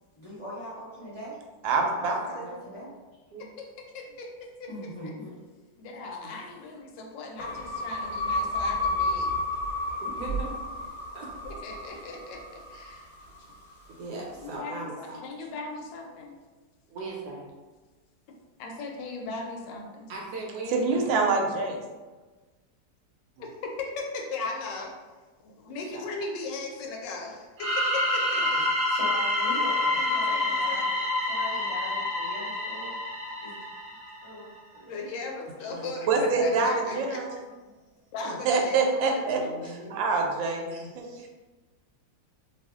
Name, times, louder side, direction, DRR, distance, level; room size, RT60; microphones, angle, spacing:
voice 1, 0.1-1.4 2.0-2.9 4.7-5.3 28.4-28.6 28.9-33.0 33.4-33.5 34.2-35.0 37.7-37.8, equal, 25° left, -10 dB, 0.9 m, -41 dB
voice 2, 1.6-2.5 20.7-21.8 36.1-37.4 38.4-41.1, right 4 dB, 90° right, 2 dB, 1.3 m, -26 dB
voice 3, 3.9-4.7 5.0-5.1 5.8-9.3 11.4-13.1 14.4-16.3 18.6-20.1 23.4-24.9 25.4-28.6 30.0-30.8 34.9-37.2 38.1-39.7, left 3 dB, 80° left, 1 dB, 1.3 m, -38 dB
voice 4, 4.9-5.3 6.2-6.3 6.9-7.1 10.0-10.8 11.1-11.3 13.9-15.2 16.9-17.5 20.1-21.1 25.9-26.0 35.7-36.4 39.3-40.0 40.7-41.3, right 2 dB, 70° right, -2 dB, 1.1 m, -40 dB
sound 1, 7.4-13.7, left 2 dB, 55° left, 1.0 m, -31 dB
sound 2, 27.6-34.2, left 2 dB, 50° right, 0.8 m, -27 dB
3.0 x 2.4 x 3.5 m, 1.3 s
omnidirectional pair, 2.0 m